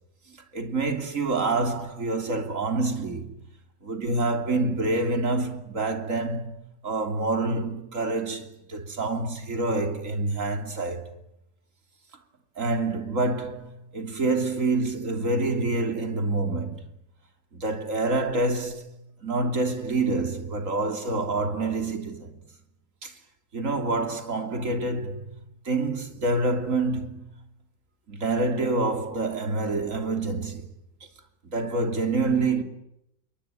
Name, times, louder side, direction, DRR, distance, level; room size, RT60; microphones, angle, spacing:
voice 1, 0.3-3.3 3.8-6.6 6.8-11.1 12.6-16.8 17.5-18.9 19.2-22.4 23.0-23.1 23.5-25.3 25.6-27.3 28.1-30.6 31.4-32.6, right 3 dB, 45° right, 3.4 m, -27 dB
28.5 x 23.0 x 9.1 m
omnidirectional pair, 2.0 m